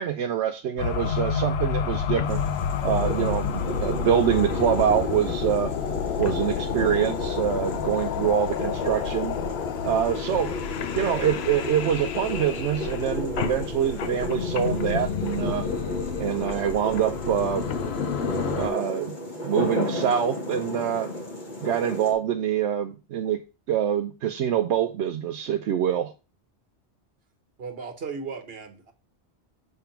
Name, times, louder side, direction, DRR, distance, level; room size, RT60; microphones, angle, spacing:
voice 1, 0.0-2.4 2.8-5.7 6.2-9.4 9.8-10.6 10.9-15.7 16.2-17.7 18.5-19.2 19.4-21.1 21.6-26.1, right 9 dB, 85° right, 6 dB, 0.9 m, -25 dB
sound 1, 0.8-18.7, left 7 dB, 70° left, 0.9 m, -29 dB
sound 2, 2.3-22.1, equal, 45° left, 1.6 m, -34 dB
voice 2, 27.6-28.9, right 5 dB, 60° right, 4 dB, 1.5 m, -36 dB
6.6 x 3.6 x 5.7 m, 0.30 s
omnidirectional pair, 1.1 m